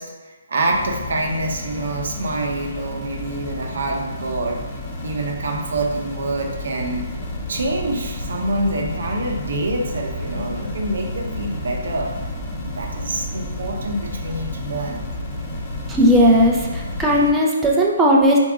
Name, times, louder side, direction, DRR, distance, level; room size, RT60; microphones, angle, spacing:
voice 1, 0.0-4.7 5.0-7.1 7.5-12.2 12.6-15.0, right 2 dB, 65° right, 2 dB, 0.7 m, -26 dB
sound 1, 0.7-17.3, left 1 dB, 20° left, 1.1 m, -33 dB
sound 2, 6.8-17.1, left 1 dB, 90° left, 1.0 m, -33 dB
voice 2, 15.9-18.4, equal, 10° right, -3 dB, 0.6 m, -16 dB
4.0 x 3.5 x 3.6 m, 1.2 s
figure-of-eight pair, 140°, 0 cm